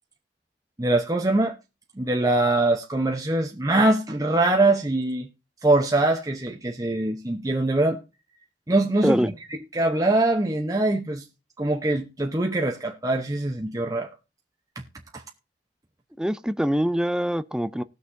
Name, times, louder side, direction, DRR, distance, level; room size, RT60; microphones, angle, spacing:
voice 1, 0.8-1.5 2.0-5.3 5.6-8.0 8.7-9.2 9.7-11.2 11.6-14.1 15.1-15.2, right 2 dB, 20° right, 0.8 m, -23 dB
voice 2, 9.0-9.3 16.2-17.8, equal, 5° right, 0.4 m, -24 dB
19.5 x 6.6 x 2.6 m
head